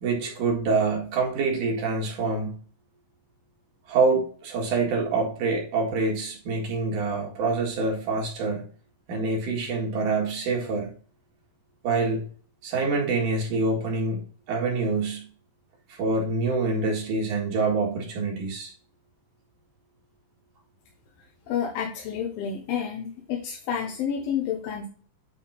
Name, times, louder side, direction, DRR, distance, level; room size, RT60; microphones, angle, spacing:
voice 1, 0.0-2.5 3.9-8.6 9.1-10.9 11.8-12.2 12.6-14.2 14.5-15.2 15.9-18.7, right 3 dB, 65° right, 0 dB, 3.1 m, -26 dB
voice 2, 21.5-24.9, left 8 dB, 90° left, 0 dB, 2.9 m, -29 dB
9.3 x 3.6 x 4.1 m, 0.41 s
omnidirectional pair, 4.1 m